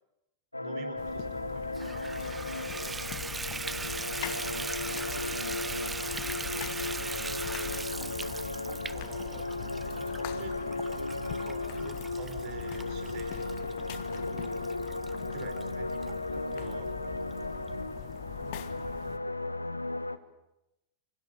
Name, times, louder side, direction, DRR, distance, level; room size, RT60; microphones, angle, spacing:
sound 1, 0.5-20.2, left 2 dB, 85° left, 1.1 m, -36 dB
voice 1, 0.6-1.9 2.3-2.6 4.9-5.1 8.9-9.5 10.3-10.5 11.3-13.5 15.3-16.0 16.5-16.9, right 9 dB, 45° right, 9 dB, 4.7 m, -48 dB
sound 2, 1.0-19.2, left 16 dB, 45° left, 1.4 m, -43 dB
Water tap faucet / Bathtub (filling or washing), 1.7-16.1 16.7-16.8 17.3-17.4 17.7-17.8, right 4 dB, 15° right, 1.0 m, -40 dB
voice 2, 18.0-20.2, left 6 dB, 30° left, -4 dB, 6.2 m, -62 dB
28.5 x 27.5 x 6.6 m, 0.91 s
figure-of-eight pair, 90°, 0 cm